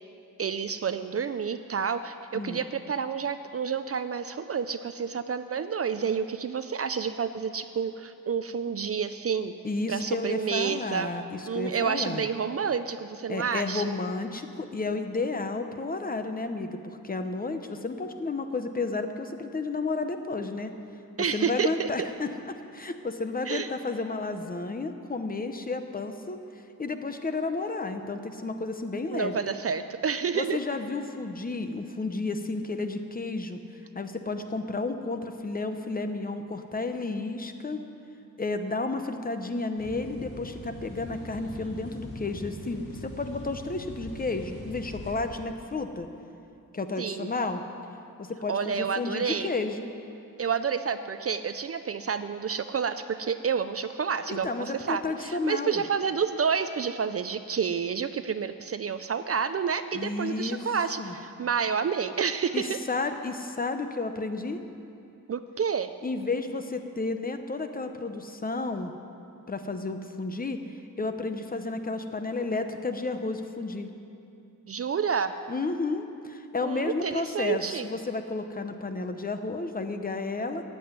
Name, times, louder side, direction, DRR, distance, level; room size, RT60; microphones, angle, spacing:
voice 1, 0.4-9.5 9.9-11.1 11.5-13.8 21.2-21.9 23.5-23.7 29.1-30.6 47.0-47.3 48.5-49.5 50.4-62.7 65.3-65.9 74.7-75.3 76.6-77.9, right 6 dB, 45° right, 11 dB, 0.4 m, -29 dB
voice 2, 9.6-12.3 13.3-20.7 21.3-26.4 26.8-29.4 30.3-33.6 33.9-37.8 38.4-46.1 46.7-47.6 48.2-49.9 54.3-55.8 59.9-60.7 61.0-61.1 62.5-64.6 66.0-68.9 69.5-70.6 71.0-73.9 75.5-80.6, left 3 dB, 25° left, 7 dB, 0.7 m, -32 dB
sound 1, 39.8-45.1, left 1 dB, 55° left, 3.2 m, -42 dB
14.5 x 7.8 x 9.4 m, 2.6 s
wide cardioid pair, 175°, 35 cm